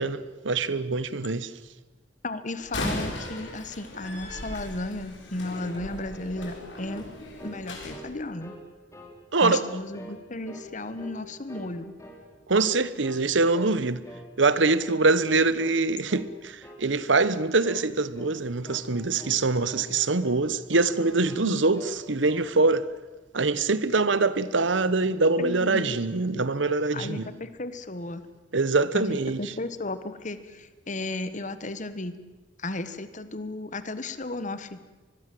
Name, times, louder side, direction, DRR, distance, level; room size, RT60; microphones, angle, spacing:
voice 1, 0.0-1.5 9.3-9.6 12.5-14.0 14.4-21.8 22.1-22.8 23.3-27.3 28.5-29.4, right 3 dB, 85° right, 1.1 m, -24 dB
voice 2, 2.2-7.1 7.4-8.6 9.4-11.9 21.4-21.6 25.4-26.0 26.3-26.4 26.9-28.3 28.9-32.2 32.6-34.8, left 2 dB, 40° left, 1.5 m, -34 dB
Slam, 2.6-8.0, left 1 dB, 80° left, 6.2 m, -37 dB
sound 1, 6.4-6.6 6.9-7.1 7.4-8.6 8.9-9.2 9.4-9.7 9.9-10.2 10.5-11.2 11.5-12.2 12.5-12.7 13.0-13.2 13.5-13.8 14.0-14.3 14.6-14.8 15.1-15.3 15.6-15.8 16.1-16.3 16.6-16.8 17.1-17.4 17.6-17.9 18.1-18.3 18.7-19.4 19.7-20.4 20.7-21.4 21.7-22.5, equal, 15° left, 4.8 m, -45 dB
24.5 x 21.5 x 7.8 m
head